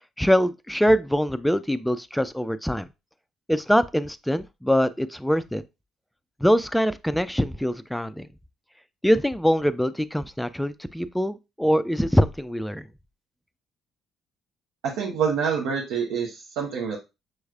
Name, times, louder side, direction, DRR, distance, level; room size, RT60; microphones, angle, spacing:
voice 1, 0.2-2.9 3.5-5.6 6.4-8.3 9.0-12.9, equal, 5° left, 0.4 m, -23 dB
voice 2, 14.8-17.0, right 6 dB, 65° right, 0.7 m, -26 dB
6.2 x 3.1 x 2.4 m
figure-of-eight pair, 45°, 0 cm